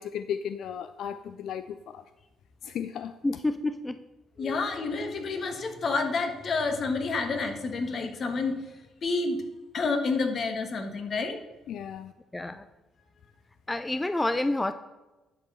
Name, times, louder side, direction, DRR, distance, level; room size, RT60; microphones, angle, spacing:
voice 1, 0.0-2.0 2.6-3.2 11.7-12.1, left 8 dB, 70° left, 0.4 m, -35 dB
voice 2, 3.2-4.0 4.4-4.6 12.3-12.7 13.7-14.7, left 2 dB, 15° left, 0.5 m, -28 dB
voice 3, 4.4-8.5 9.0-9.4 9.7-11.4, left 4 dB, 50° left, 1.6 m, -29 dB
10.5 x 4.7 x 7.0 m
cardioid pair, 90°, 0 cm